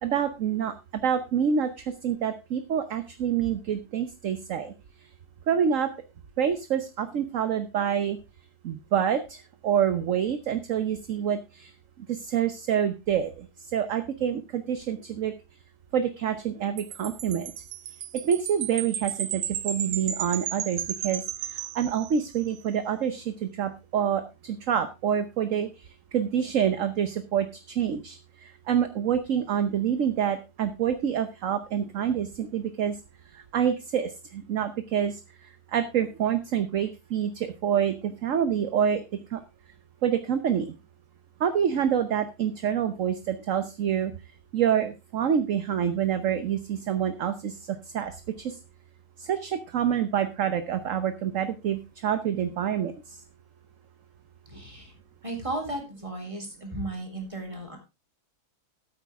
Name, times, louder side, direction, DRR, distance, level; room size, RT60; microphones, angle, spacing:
voice 1, 0.0-4.7 5.5-5.9 6.4-8.2 8.6-11.7 12.1-15.3 15.9-17.5 18.2-33.0 33.3-35.2 35.7-39.0 39.3-39.4 40.0-40.7 41.4-44.1 44.5-48.6 49.2-53.2, right 8 dB, 60° right, 10 dB, 1.2 m, -27 dB
Wind chime, 16.8-22.5, right 10 dB, 85° right, 1.4 m, -34 dB
voice 2, 54.5-54.9 55.2-57.8, right 2 dB, 20° right, 2 dB, 3.7 m, -35 dB
13.5 x 8.8 x 3.6 m, 0.26 s
omnidirectional pair, 1.7 m